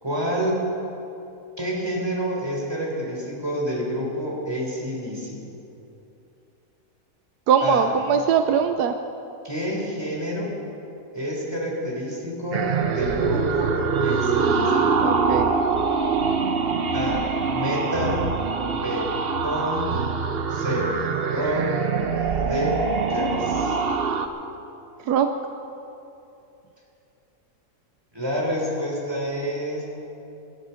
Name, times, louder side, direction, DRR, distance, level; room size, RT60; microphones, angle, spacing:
voice 1, 0.0-0.6 1.6-5.4 7.6-7.9 9.4-10.5 11.1-14.9 16.9-18.3 18.7-19.1 19.4-20.0 20.5-21.0 21.3-21.9 22.4-23.8 28.1-29.8, equal, 15° right, -3 dB, 3.7 m, -28 dB
voice 2, 7.5-9.0 15.0-15.5 25.1-25.3, right 7 dB, 90° right, 7 dB, 1.2 m, -21 dB
sound 1, 12.5-24.3, right 5 dB, 45° right, 0.9 m, -24 dB
18.5 x 12.5 x 5.7 m, 2.8 s
omnidirectional pair, 1.6 m